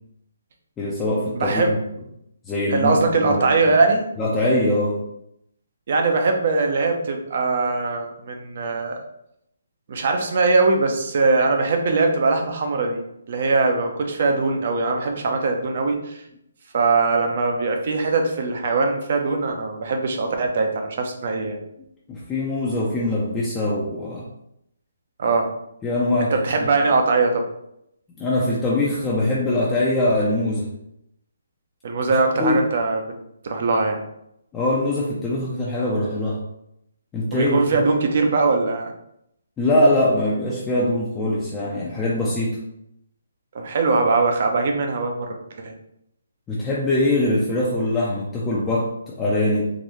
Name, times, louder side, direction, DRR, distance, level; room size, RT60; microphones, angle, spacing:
voice 1, 0.8-1.8 2.5-3.8 4.2-5.0 22.1-24.3 25.8-26.3 26.6-26.7 28.2-30.7 32.4-32.6 34.5-36.4 37.1-37.6 39.6-42.6 46.5-49.7, left 1 dB, 10° left, -6 dB, 0.5 m, -22 dB
voice 2, 1.3-1.7 2.7-4.0 5.9-9.0 9.9-13.0 13.3-16.2 16.7-21.6 25.2-25.5 26.3-27.4 31.8-33.1 33.4-34.0 37.3-38.9 43.5-45.7, right 3 dB, 50° right, 3 dB, 0.7 m, -21 dB
3.9 x 2.6 x 3.1 m, 0.78 s
hypercardioid pair, 160°, 0 cm